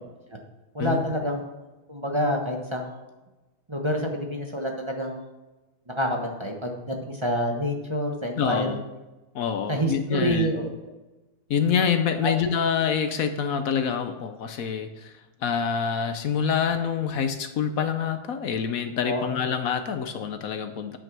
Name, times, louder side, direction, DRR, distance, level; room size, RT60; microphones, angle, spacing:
voice 1, 0.7-1.5 1.9-3.0 3.7-5.3 5.9-8.8 9.7-10.9 12.2-12.3 19.0-19.4, equal, 25° right, 1 dB, 0.6 m, -28 dB
voice 2, 8.4-8.8 9.3-10.5 11.5-15.1 15.4-21.0, left 7 dB, 65° left, 8 dB, 0.8 m, -26 dB
9.2 x 8.8 x 6.1 m, 1.1 s
omnidirectional pair, 2.3 m